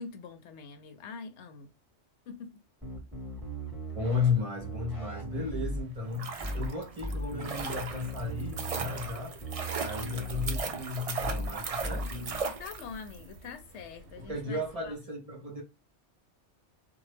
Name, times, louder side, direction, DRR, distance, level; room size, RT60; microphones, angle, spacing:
voice 1, 0.0-1.7 2.3-2.6 12.6-14.9, left 5 dB, 75° left, 0.8 m, -44 dB
sound 1, 2.8-4.3 4.6-5.8 6.4-6.7 7.0-9.1 9.4-10.6 11.2-11.5 11.8-12.4, equal, ahead, 1.4 m, -37 dB
voice 2, 3.9-9.3 9.8-12.1 14.2-15.6, left 4 dB, 30° right, 1.1 m, -34 dB
sound 2, 5.3-15.0, right 2 dB, 70° right, 0.9 m, -52 dB
sound 3, 6.0-13.2 13.4-13.5, right 5 dB, 55° right, 0.4 m, -37 dB
2.9 x 2.2 x 3.1 m
omnidirectional pair, 1.2 m